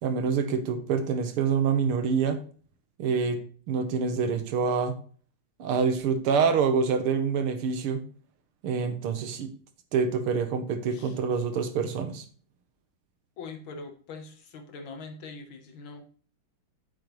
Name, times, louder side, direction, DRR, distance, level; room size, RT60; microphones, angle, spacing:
voice 1, 0.0-2.4 3.0-3.4 3.7-5.0 5.6-8.0 8.6-9.5 9.9-12.2, right 6 dB, 85° right, 9 dB, 2.0 m, -26 dB
voice 2, 13.4-16.0, left 4 dB, 65° left, 6 dB, 2.0 m, -42 dB
8.9 x 7.6 x 3.1 m, 0.43 s
omnidirectional pair, 2.4 m